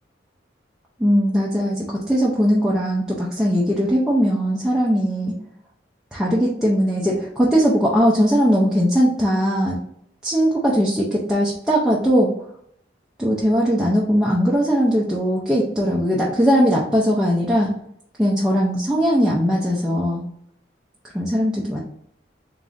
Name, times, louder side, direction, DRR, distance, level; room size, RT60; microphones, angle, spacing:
voice 1, 1.0-5.3 6.1-9.8 10.2-12.3 13.2-17.7 18.2-20.2 21.1-21.8, equal, 5° right, -5 dB, 0.5 m, -19 dB
3.7 x 3.5 x 2.5 m, 0.70 s
head